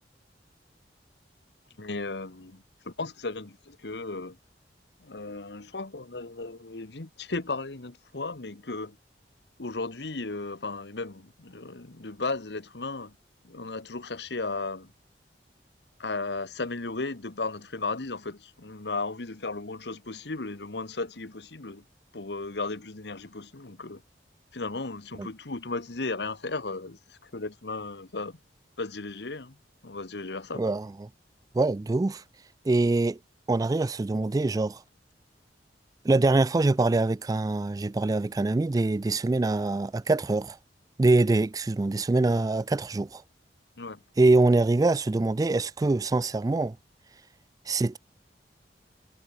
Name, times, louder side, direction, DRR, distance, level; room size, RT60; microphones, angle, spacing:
voice 1, 1.8-4.4 5.0-9.0 9.6-13.2 13.4-14.9 16.0-21.8 22.1-24.0 24.5-28.4 28.8-29.6 29.8-30.7 43.8-44.0, left 3 dB, 70° left, 1.3 m, -35 dB
voice 2, 30.5-31.1 31.5-32.2 32.7-33.2 33.5-34.8 36.0-40.6 41.0-43.2 44.2-46.8 47.7-48.0, right 2 dB, 20° right, 0.3 m, -24 dB
head